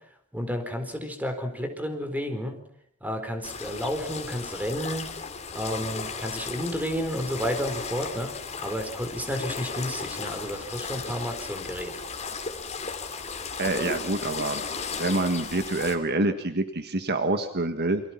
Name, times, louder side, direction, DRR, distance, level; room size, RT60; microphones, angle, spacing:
voice 1, 0.3-2.6 3.0-5.1 5.5-12.0, equal, 5° right, 6 dB, 4.2 m, -31 dB
sound 1, 3.4-16.0, left 5 dB, 30° left, 3.1 m, -35 dB
voice 2, 13.6-14.6 14.9-18.0, right 2 dB, 50° right, 8 dB, 1.6 m, -26 dB
29.0 x 25.0 x 5.9 m, 0.65 s
head